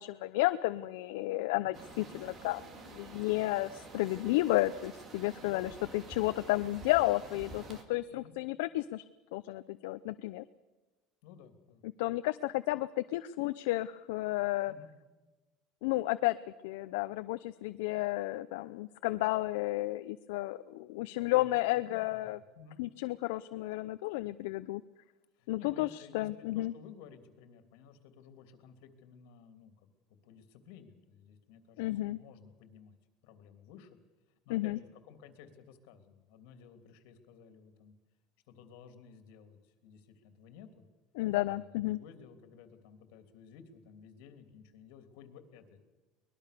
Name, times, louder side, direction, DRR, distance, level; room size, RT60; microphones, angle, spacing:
voice 1, 0.0-9.0 9.3-10.4 12.0-14.7 15.8-16.4 16.6-22.4 22.8-24.8 25.5-26.7 31.8-32.2 34.5-34.8 41.2-42.0, left 18 dB, 85° left, 11 dB, 0.6 m, -32 dB
voice 2, 1.5-2.2 5.4-6.0 8.1-8.4 11.2-11.8 14.7-15.0 21.2-22.8 25.3-29.9 30.2-33.0 33.2-34.0 34.4-37.9 38.5-40.8 41.3-45.8, left 7 dB, 70° left, 9 dB, 3.0 m, -55 dB
sound 1, 1.7-7.8, right 3 dB, 25° right, 2.4 m, -49 dB
23.5 x 20.5 x 6.8 m, 1.2 s
cardioid pair, 165°, 0 cm